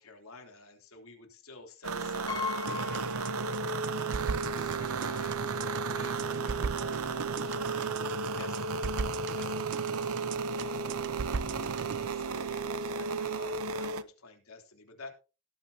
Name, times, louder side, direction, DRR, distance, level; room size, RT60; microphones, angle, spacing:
voice 1, 0.0-3.1 3.8-7.9 8.3-8.9 9.2-10.9 11.4-15.1, left 3 dB, 75° left, 4 dB, 3.4 m, -50 dB
sound 1, 1.8-14.0, right 4 dB, 75° right, 0.8 m, -34 dB
Piano, 2.3-4.1 4.4-4.5 5.7-5.8 6.1-6.3, left 6 dB, 20° left, 2.7 m, -38 dB
sound 2, 2.7-12.1, right 4 dB, 50° right, 0.5 m, -38 dB
17.5 x 9.1 x 2.8 m, 0.32 s
head